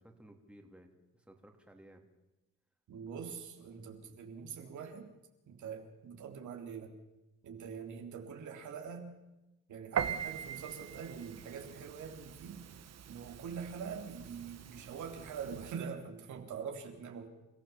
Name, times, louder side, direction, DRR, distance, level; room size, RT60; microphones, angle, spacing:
voice 1, 0.0-2.1, right 1 dB, 5° right, 3 dB, 3.4 m, -57 dB
voice 2, 2.9-5.1 5.5-6.9 7.4-9.2 9.7-12.6 13.1-17.3, right 6 dB, 75° right, 3 dB, 3.5 m, -44 dB
Piano, 10.0-15.8, right 8 dB, 60° right, 1.4 m, -42 dB
29.0 x 15.0 x 7.2 m, 0.98 s
cardioid pair, 90°, 30 cm